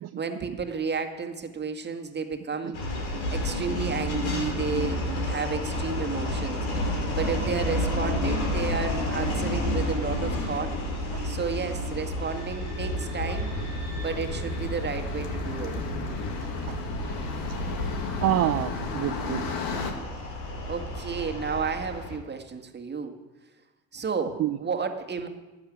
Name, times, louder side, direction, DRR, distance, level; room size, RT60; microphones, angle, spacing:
voice 1, 0.2-2.8 3.3-6.7 7.1-10.7 11.2-13.5 14.0-15.7 20.7-23.1 23.9-25.3, right 5 dB, 30° right, 5 dB, 1.9 m, -32 dB
sound 1, 2.7-22.2, left 1 dB, 85° left, 3.2 m, -31 dB
sound 2, 12.8-19.9, left 4 dB, 65° left, 2.1 m, -34 dB
voice 2, 18.2-19.5 19.7-19.8 24.4-24.6, right 13 dB, 45° right, 9 dB, 0.6 m, -27 dB
11.5 x 8.1 x 9.3 m, 1.1 s
supercardioid pair, 85°, 36 cm